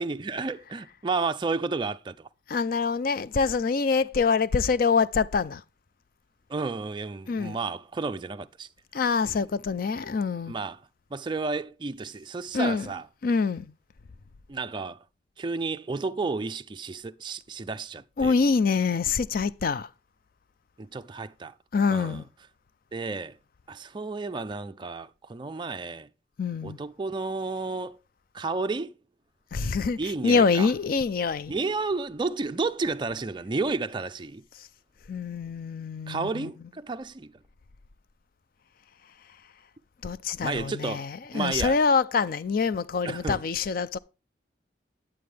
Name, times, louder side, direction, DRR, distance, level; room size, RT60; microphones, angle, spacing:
voice 1, 0.0-2.3 6.5-8.7 9.2-9.4 10.5-10.8 11.1-13.1 14.5-15.0 15.4-18.3 20.8-21.5 21.9-22.2 22.9-23.4 23.7-26.1 26.6-28.0 28.3-28.9 30.0-30.7 31.5-34.4 36.1-37.3 40.4-41.8 43.0-43.4, right 3 dB, 25° right, 0.4 m, -32 dB
voice 2, 2.5-5.6 7.3-7.6 8.9-10.6 12.5-12.9 13.2-13.7 18.2-19.9 21.7-22.2 26.4-26.8 29.5-31.5 35.1-36.5 40.0-44.0, left 5 dB, 50° left, 0.4 m, -25 dB
9.3 x 8.7 x 3.4 m
head